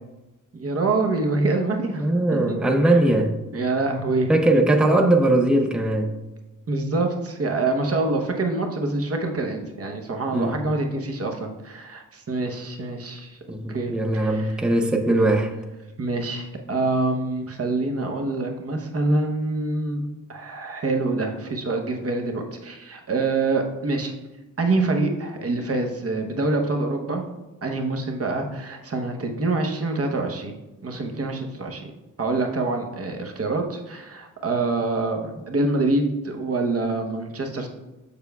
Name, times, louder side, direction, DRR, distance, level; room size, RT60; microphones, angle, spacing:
voice 1, 0.5-2.0 2.3-2.6 2.9-3.0 3.5-4.3 6.7-13.4 13.7-14.5 16.0-20.0 20.3-24.1 24.6-27.3 27.6-30.6 30.8-31.9 32.2-37.7, right 2 dB, 45° right, 3 dB, 0.9 m, -26 dB
voice 2, 2.0-3.3 4.3-6.1 10.3-10.6 13.5-15.5, right 1 dB, 5° right, 4 dB, 0.5 m, -20 dB
6.9 x 6.6 x 2.3 m, 1.0 s
wide cardioid pair, 100°, 32 cm